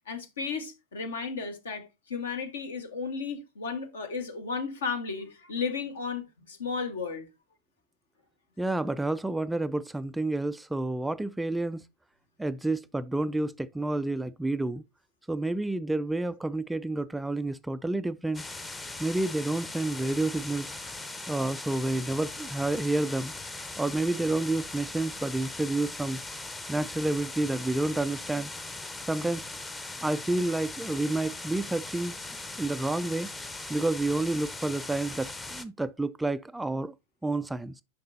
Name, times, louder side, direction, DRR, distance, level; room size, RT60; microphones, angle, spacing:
voice 1, 0.1-7.3, left 5 dB, 65° left, 1.5 m, -34 dB
voice 2, 8.6-11.8 12.4-14.8 15.3-18.4 19.0-20.8 21.3-23.3 23.8-26.2 26.7-28.5 29.0-29.4 30.0-32.1 32.6-33.3 33.7-36.9 37.2-37.8, right 2 dB, 5° right, 0.3 m, -29 dB
sound 1, 18.3-35.6, left 2 dB, 15° left, 0.8 m, -40 dB
10.0 x 5.8 x 2.7 m
figure-of-eight pair, 90°, 0 cm